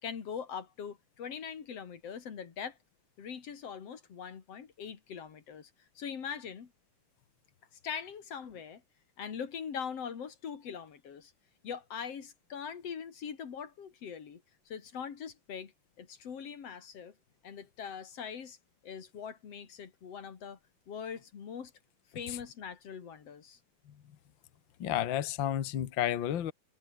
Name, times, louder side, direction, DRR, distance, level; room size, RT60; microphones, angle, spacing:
voice 1, 0.0-2.8 3.2-5.7 5.9-6.7 7.8-8.8 9.2-11.3 11.6-15.7 16.0-17.1 17.4-18.6 18.8-20.6 20.9-21.7 22.1-23.6, left 7 dB, 45° left, 3.2 m, -42 dB
voice 2, 24.8-26.5, left 11 dB, 85° left, 1.0 m, -31 dB
omnidirectional pair, 4.3 m